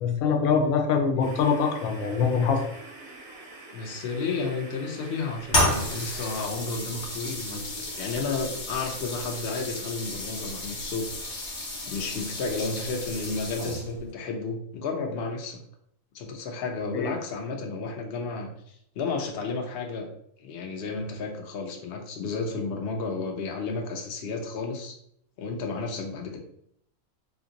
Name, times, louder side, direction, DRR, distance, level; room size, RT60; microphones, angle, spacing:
voice 1, 0.0-2.6 16.9-17.1, left 5 dB, 80° left, 4 dB, 1.0 m, -24 dB
sound 1, 1.2-6.5, right 2 dB, 60° right, 0.7 m, -45 dB
voice 2, 3.7-11.1 11.9-15.6 16.1-20.1 20.4-25.0 25.4-26.4, left 4 dB, 60° left, 2 dB, 0.7 m, -32 dB
sound 2, 5.5-14.1, left 1 dB, 40° left, 0.9 m, -32 dB
2.6 x 2.5 x 3.8 m, 0.71 s
omnidirectional pair, 1.4 m